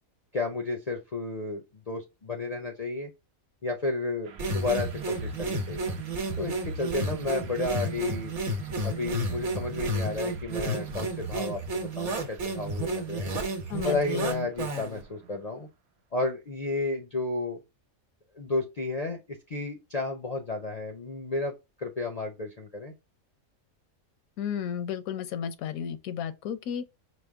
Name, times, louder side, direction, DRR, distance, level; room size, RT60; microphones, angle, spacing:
voice 1, 0.3-1.6 1.9-3.1 3.6-5.9 6.4-8.3 8.8-13.3 13.8-15.7 16.1-17.6 18.3-21.5 21.8-22.9, left 3 dB, 60° left, 0.4 m, -32 dB
sound 1, 4.2-15.7, right 6 dB, 85° right, 1.1 m, -49 dB
sound 2, 4.4-15.0, right 2 dB, 60° right, 1.3 m, -31 dB
voice 2, 13.7-14.5 24.4-26.8, left 8 dB, 80° left, 1.0 m, -33 dB
5.1 x 2.0 x 3.4 m
omnidirectional pair, 1.5 m